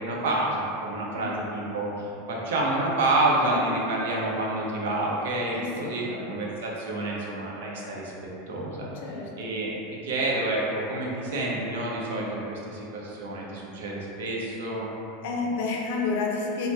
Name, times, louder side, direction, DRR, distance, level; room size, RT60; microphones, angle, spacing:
voice 1, 0.0-8.1 8.5-8.9 9.4-14.9, right 2 dB, 85° right, -3 dB, 0.6 m, -28 dB
voice 2, 5.5-6.3 8.9-9.6 15.2-16.7, left 4 dB, 70° left, -1 dB, 0.5 m, -31 dB
2.8 x 2.1 x 3.2 m, 2.9 s
supercardioid pair, 145°, 0 cm